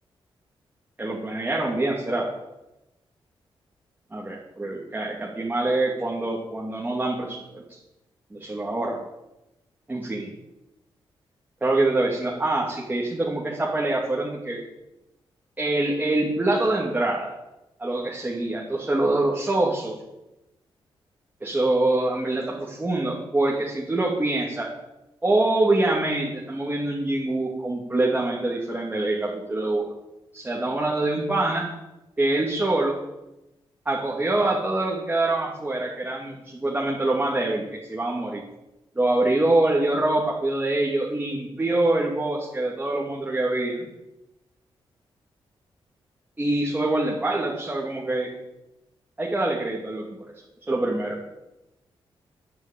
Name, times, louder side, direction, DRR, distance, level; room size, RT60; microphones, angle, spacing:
voice 1, 1.0-2.3 4.1-7.4 7.7-7.8 8.3-9.0 9.9-10.3 11.6-14.6 15.6-17.3 17.8-20.0 21.4-24.7 25.2-29.8 30.3-31.7 32.2-33.0 33.8-38.4 38.9-43.9 46.4-48.3 49.2-50.0 50.6-51.2, right 2 dB, 20° right, -3 dB, 2.8 m, -25 dB
11.0 x 10.5 x 8.6 m, 0.95 s
wide cardioid pair, 115°, 9 cm